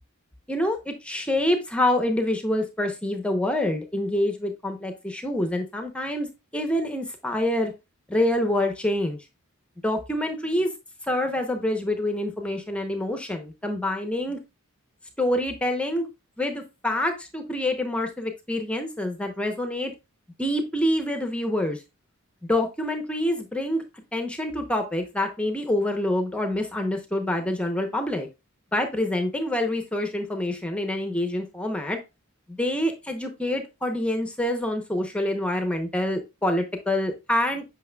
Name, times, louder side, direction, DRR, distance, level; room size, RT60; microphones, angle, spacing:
voice 1, 0.5-6.3 6.5-7.7 8.1-9.2 9.8-10.7 11.1-14.4 15.2-16.0 16.4-19.9 20.4-21.8 22.5-23.8 24.1-28.3 28.7-32.0 32.5-37.6, left 1 dB, 5° left, 5 dB, 0.7 m, -26 dB
8.3 x 5.7 x 2.2 m, 0.25 s
head